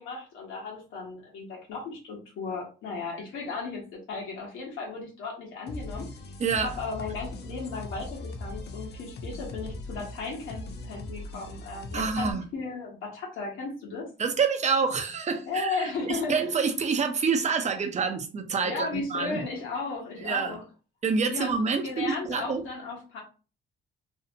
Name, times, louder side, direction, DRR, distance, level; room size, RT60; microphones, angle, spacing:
voice 1, 0.0-6.1 6.5-14.1 15.5-16.4 18.6-20.6 21.3-21.5 21.8-23.2, left 4 dB, 85° left, -3 dB, 1.0 m, -35 dB
sound 1, 5.7-12.3, left 2 dB, 55° left, 0.5 m, -39 dB
voice 2, 11.9-12.4 14.2-19.4 20.2-20.6 21.0-22.6, right 5 dB, 35° right, 5 dB, 0.6 m, -27 dB
2.6 x 2.0 x 2.7 m, 0.35 s
cardioid pair, 90°, 20 cm